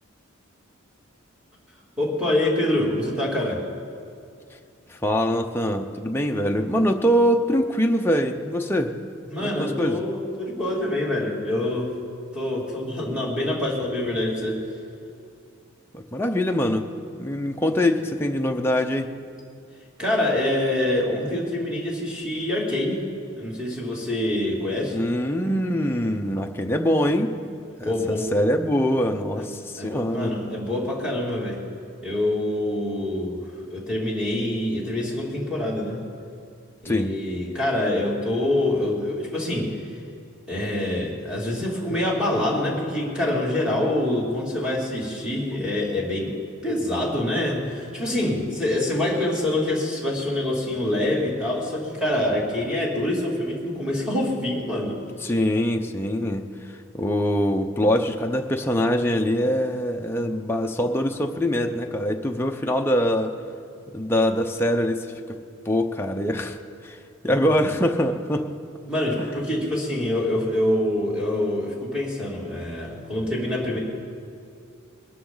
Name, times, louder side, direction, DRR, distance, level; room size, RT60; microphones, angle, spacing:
voice 1, 2.0-3.6 9.3-11.9 12.3-14.6 20.0-23.1 23.4-25.0 27.8-28.3 29.4-29.5 29.8-31.6 32.0-36.1 36.8-39.8 40.5-46.4 46.6-55.0 67.2-67.5 68.9-73.8, left 1 dB, 5° right, -4 dB, 2.8 m, -25 dB
voice 2, 4.9-8.9 9.4-10.0 15.9-16.8 17.2-19.1 24.9-27.3 27.8-30.3 36.8-37.1 55.2-63.3 63.9-65.4 65.7-66.6 66.8-67.0 67.2-68.5 69.2-69.4, equal, 10° left, 2 dB, 0.6 m, -23 dB
22.0 x 13.0 x 3.9 m, 2.4 s
head